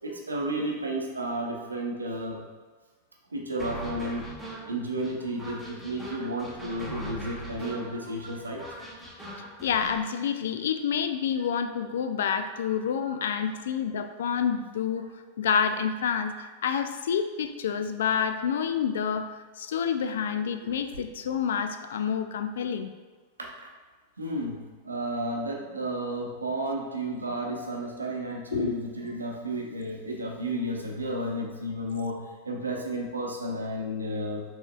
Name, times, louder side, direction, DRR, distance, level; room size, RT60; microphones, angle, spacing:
voice 1, 0.0-2.4 3.3-4.2 4.7-8.9 13.1-13.3 23.4-23.7 24.2-24.6 24.8-32.2 32.4-34.4, right 1 dB, 75° right, 0 dB, 0.7 m, -32 dB
sound 1, 3.6-10.0, right 1 dB, 5° left, 1.1 m, -41 dB
voice 2, 9.6-15.1 15.4-19.3 19.6-22.9 28.5-28.8, left 7 dB, 60° left, 8 dB, 0.3 m, -28 dB
6.1 x 3.5 x 2.3 m, 1.3 s
figure-of-eight pair, 90°, 0 cm